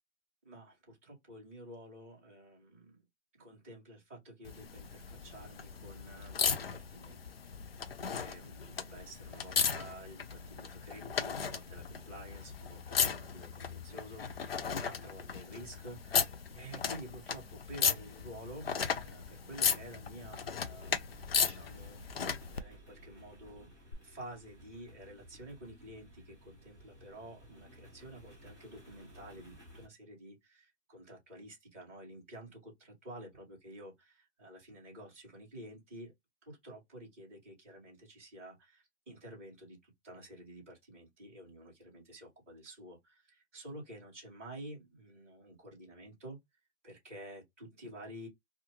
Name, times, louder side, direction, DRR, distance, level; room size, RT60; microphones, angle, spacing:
voice 1, 0.4-3.0 3.4-7.2 8.0-23.7 24.0-36.1 36.4-46.4 46.8-48.3, right 1 dB, 10° right, 1.1 m, -50 dB
sound 1, 4.4-22.6 23.9-24.0, left 6 dB, 55° left, 0.5 m, -36 dB
sound 2, 20.8-29.9, equal, 15° left, 1.2 m, -56 dB
2.6 x 2.4 x 2.9 m
hypercardioid pair, 180°, 35 cm